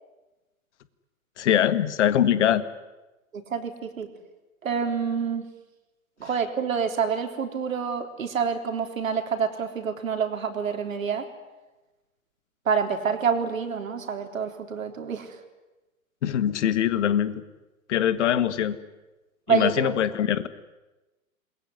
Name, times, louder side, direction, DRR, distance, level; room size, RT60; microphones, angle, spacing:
voice 1, 1.4-2.6 16.2-17.4 17.9-18.8 19.5-20.5, left 10 dB, 55° left, 14 dB, 1.8 m, -23 dB
voice 2, 3.3-4.1 4.6-5.5 6.2-11.3 12.7-15.3 19.5-19.9, right 6 dB, 65° right, 6 dB, 3.7 m, -27 dB
28.5 x 21.5 x 9.7 m, 1.1 s
figure-of-eight pair, 110°, 42 cm